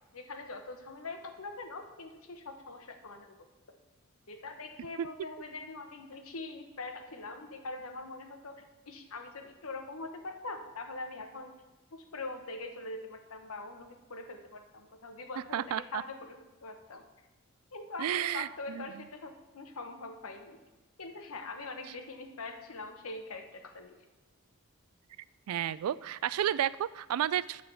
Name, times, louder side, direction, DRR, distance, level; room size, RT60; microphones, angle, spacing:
voice 1, 0.1-3.4 4.3-11.5 11.9-15.7 15.9-17.0 17.7-20.6 21.0-24.0, left 3 dB, 85° left, 5 dB, 1.0 m, -43 dB
voice 2, 15.5-16.0 18.0-19.0 25.5-27.6, right 10 dB, 90° right, 17 dB, 0.3 m, -32 dB
11.0 x 3.8 x 7.2 m, 1.1 s
head